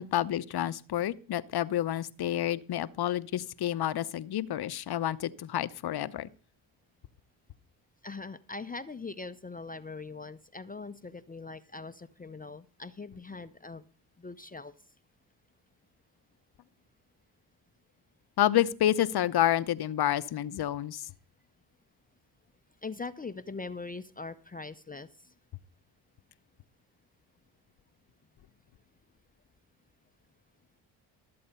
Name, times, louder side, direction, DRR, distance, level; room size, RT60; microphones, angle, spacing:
voice 1, 0.0-6.3 18.4-21.0, left 12 dB, 50° left, 0.8 m, -29 dB
voice 2, 8.0-13.8 14.2-14.7 22.8-25.3, left 3 dB, 20° left, 0.6 m, -41 dB
13.5 x 7.7 x 5.4 m
supercardioid pair, 70°, 47 cm